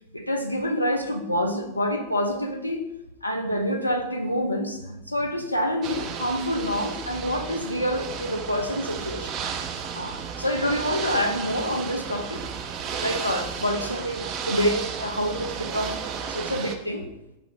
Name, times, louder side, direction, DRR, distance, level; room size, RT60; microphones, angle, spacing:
voice 1, 0.1-2.9 3.2-9.3 9.9-12.4 13.0-16.0 16.3-17.1, equal, 85° left, 3 dB, 0.5 m, -27 dB
Ocean / Boat Water vehicle, 5.8-16.7, right 6 dB, 40° right, 0.4 m, -33 dB
5.5 x 2.0 x 3.7 m, 0.90 s
figure-of-eight pair, 90°, 0 cm